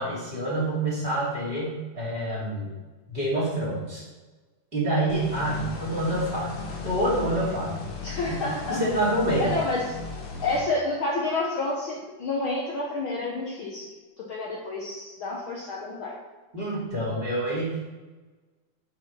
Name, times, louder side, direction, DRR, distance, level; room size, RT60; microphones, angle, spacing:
voice 1, 0.0-2.7 3.1-4.0 4.7-7.8 8.3-8.4 8.7-9.5 16.5-17.8, right 1 dB, 20° right, -7 dB, 2.6 m, -27 dB
sound 1, 5.1-10.6, left 4 dB, 60° left, 2.1 m, -36 dB
voice 2, 8.0-8.8 9.4-10.0 10.4-16.1, left 2 dB, 80° left, -3 dB, 1.1 m, -29 dB
6.4 x 5.7 x 5.4 m, 1.3 s
omnidirectional pair, 3.6 m